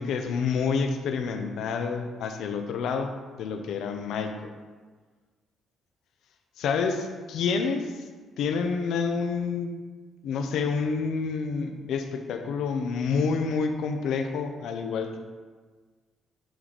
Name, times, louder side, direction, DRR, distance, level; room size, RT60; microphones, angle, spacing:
voice 1, 0.0-3.1 3.4-4.5 6.6-8.1 8.4-9.7 10.2-15.2, left 5 dB, 80° left, 6 dB, 0.6 m, -28 dB
9.2 x 3.2 x 4.1 m, 1.4 s
cardioid pair, 90°, 0 cm